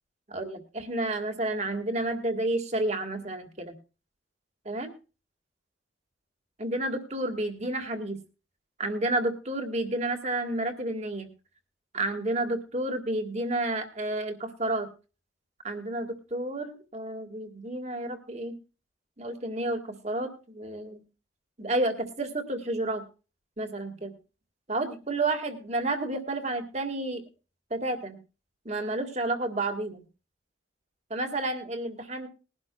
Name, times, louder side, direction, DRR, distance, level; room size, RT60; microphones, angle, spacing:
voice 1, 0.3-3.8 4.7-4.9 6.6-8.2 8.8-11.3 11.9-14.9 15.6-18.5 19.2-21.0 21.6-23.0 23.6-24.1 24.7-27.2 27.7-28.2 28.7-30.0 31.1-32.3, right 2 dB, 35° right, 6 dB, 1.7 m, -30 dB
21.0 x 11.5 x 2.3 m, 0.32 s
head